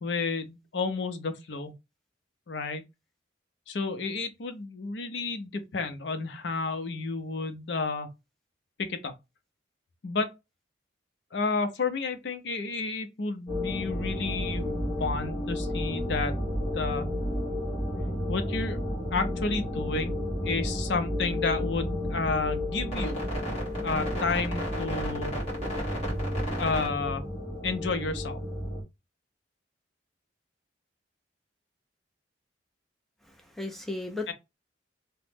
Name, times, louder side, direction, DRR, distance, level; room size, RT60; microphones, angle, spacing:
voice 1, 0.0-1.7 2.5-2.8 3.7-8.1 8.8-9.1 10.0-10.3 11.3-14.6 15.0-16.4 16.7-17.1 18.3-18.8 19.1-23.2 23.8-25.3 26.6-27.2 27.6-28.4 34.3-34.4, left 4 dB, 65° left, 0.5 m, -31 dB
sound 1, 13.5-28.8, left 1 dB, 35° left, 1.3 m, -31 dB
voice 2, 33.3-34.3, left 2 dB, ahead, 0.4 m, -35 dB
2.9 x 2.1 x 3.3 m
head